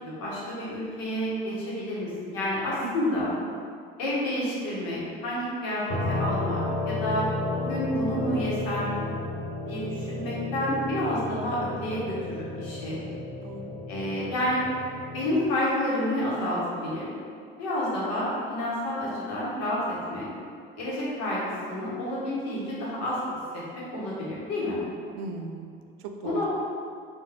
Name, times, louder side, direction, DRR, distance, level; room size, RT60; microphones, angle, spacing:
voice 1, 0.0-3.3 4.0-7.3 7.5-9.0 9.7-13.0 13.9-14.6 15.1-17.1 17.6-20.3 20.8-23.2 23.5-23.6 23.9-24.8 26.2-26.5, left 1 dB, 60° left, -7 dB, 1.3 m, -29 dB
sound 1, 5.9-15.4, left 2 dB, 45° left, 0.9 m, -32 dB
voice 2, 13.4-13.8 25.2-26.5, right 4 dB, 60° right, 5 dB, 0.5 m, -38 dB
3.4 x 2.6 x 3.5 m, 2.3 s
hypercardioid pair, 75°, 29 cm